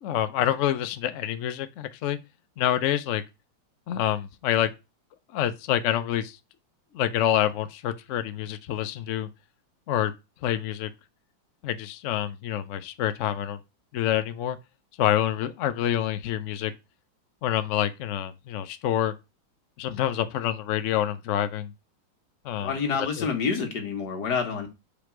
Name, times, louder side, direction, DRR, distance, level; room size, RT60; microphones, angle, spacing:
voice 1, 0.0-2.2 2.6-3.2 3.9-4.7 5.3-6.4 6.9-9.3 9.9-10.1 10.4-10.9 11.6-13.6 13.9-14.6 15.0-16.7 17.4-19.1 19.8-21.7 22.4-23.3, left 11 dB, 75° left, 0.7 m, -27 dB
voice 2, 22.6-24.7, left 5 dB, 60° left, 2.0 m, -28 dB
5.2 x 4.2 x 5.9 m
omnidirectional pair, 2.1 m